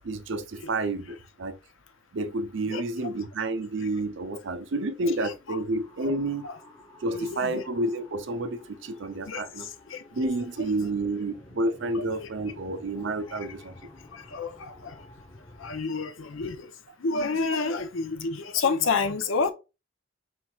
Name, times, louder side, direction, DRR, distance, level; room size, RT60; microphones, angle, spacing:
voice 1, 0.0-1.6 2.1-6.5 7.0-9.7 10.1-13.7, right 2 dB, 70° right, 0.5 m, -30 dB
sound 1, 4.1-15.8, left 1 dB, 15° left, 0.8 m, -52 dB
voice 2, 5.2-5.6 6.0-6.1 6.4-6.6 7.1-7.6 9.3-10.0 10.6-10.7 11.9-12.3 13.3-13.5 14.1-15.0 15.6-16.7 17.0-19.5, left 4 dB, 85° left, 0.6 m, -30 dB
4.5 x 4.2 x 2.3 m
head